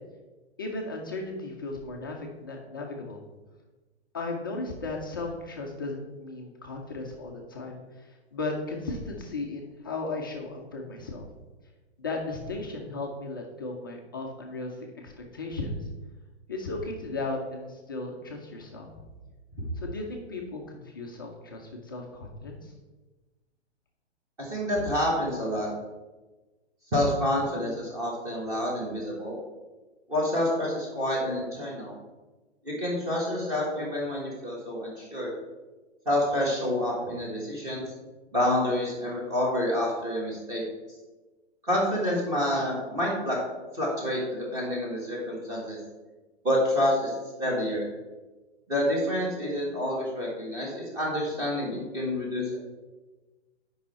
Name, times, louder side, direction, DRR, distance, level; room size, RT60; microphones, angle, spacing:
voice 1, 0.6-3.2 4.1-11.3 12.0-15.9 16.5-18.9 19.8-22.7, left 2 dB, 20° left, -1 dB, 0.5 m, -36 dB
voice 2, 24.4-25.7 26.9-29.4 30.1-32.0 32.6-35.3 36.0-37.8 38.3-40.6 41.6-43.4 43.7-45.8 46.4-47.1 47.4-47.9 48.7-52.6, left 1 dB, 10° right, -4 dB, 1.3 m, -28 dB
8.5 x 5.5 x 4.1 m, 1.2 s
hypercardioid pair, 175°, 34 cm